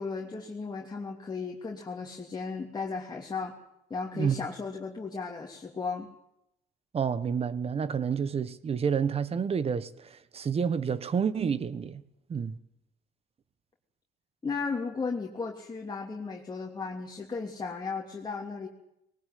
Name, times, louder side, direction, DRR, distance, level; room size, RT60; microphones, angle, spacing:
voice 1, 0.0-3.5 3.9-6.1 14.4-18.7, left 4 dB, 25° left, 3.1 m, -35 dB
voice 2, 6.9-12.0 12.3-12.6, right 6 dB, 35° right, 1.4 m, -29 dB
21.0 x 19.5 x 9.4 m
cardioid pair, 110°, 17 cm